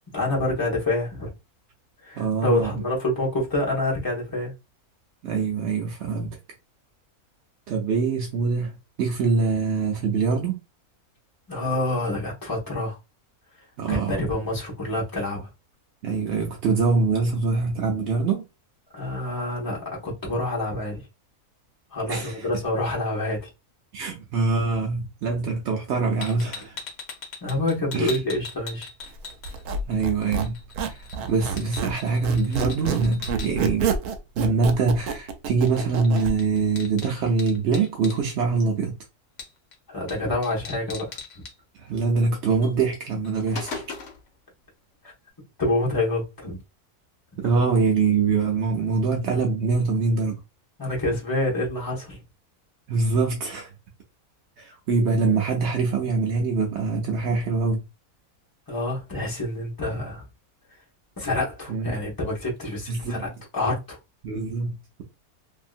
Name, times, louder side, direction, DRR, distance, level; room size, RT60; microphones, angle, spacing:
voice 1, 0.1-1.3 2.0-4.5 11.5-13.0 13.9-15.5 18.9-21.0 21.9-23.5 27.4-28.9 39.9-41.2 45.0-45.1 45.6-46.6 50.8-52.2 58.7-60.2 61.2-64.0, left 1 dB, 15° left, 0.9 m, -27 dB
voice 2, 2.2-2.8 5.2-6.4 7.7-10.6 13.8-14.2 16.0-18.4 22.1-22.5 23.9-26.8 27.9-28.2 29.8-31.0 31.3-33.9 34.4-38.9 41.7-43.8 47.4-50.4 52.9-53.7 54.6-57.8 61.7-62.0 62.9-63.3 64.2-65.0, right 4 dB, 65° right, 0.7 m, -24 dB
sound 1, 26.2-29.9 30.2-33.5 35.7-35.8 36.0-38.2 39.4-39.8 40.1-40.2 40.4-41.5 42.6-42.7 43.1-44.3, left 4 dB, 60° left, 1.0 m, -39 dB
Squeak, 29.5-32.0 32.2-36.3, right 6 dB, 80° right, 1.1 m, -28 dB
2.7 x 2.7 x 2.4 m
omnidirectional pair, 1.6 m